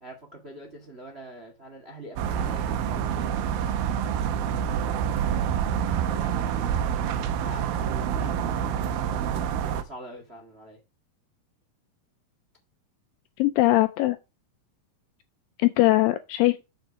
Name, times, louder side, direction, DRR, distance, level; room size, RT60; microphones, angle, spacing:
voice 1, 0.0-6.5 7.4-9.0 9.3-10.8, right 1 dB, 40° right, 0.8 m, -45 dB
sound 1, 2.2-9.8, right 8 dB, 75° right, 2.5 m, -27 dB
voice 2, 13.4-14.2 15.6-16.6, left 17 dB, 80° left, 2.0 m, -21 dB
6.9 x 6.1 x 5.1 m
omnidirectional pair, 4.5 m